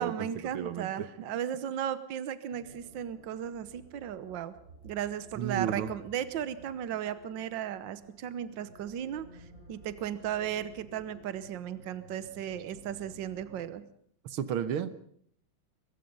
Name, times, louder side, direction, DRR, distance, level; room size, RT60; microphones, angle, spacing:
voice 1, 0.0-4.5 4.8-9.3 9.7-13.8, right 10 dB, 65° right, 14 dB, 1.6 m, -35 dB
voice 2, 0.5-1.1 5.4-5.9 14.2-14.9, right 9 dB, 85° right, 13 dB, 1.9 m, -32 dB
sound 1, 2.5-13.7, right 1 dB, 40° right, 5.9 m, -55 dB
23.5 x 21.0 x 5.5 m, 0.64 s
omnidirectional pair, 2.3 m